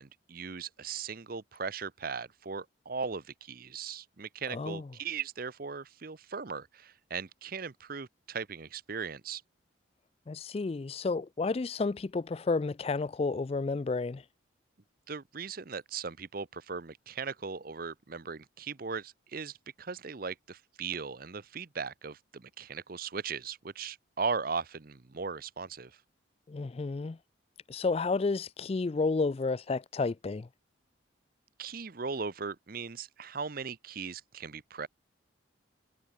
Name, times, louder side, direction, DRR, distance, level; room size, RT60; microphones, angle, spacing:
voice 1, 0.0-9.4 15.1-26.0 31.6-34.9, right 5 dB, 45° right, 0.7 m, -38 dB
voice 2, 4.5-4.8 10.3-14.2 26.5-27.2 27.7-30.5, left 3 dB, 30° left, 0.3 m, -31 dB
head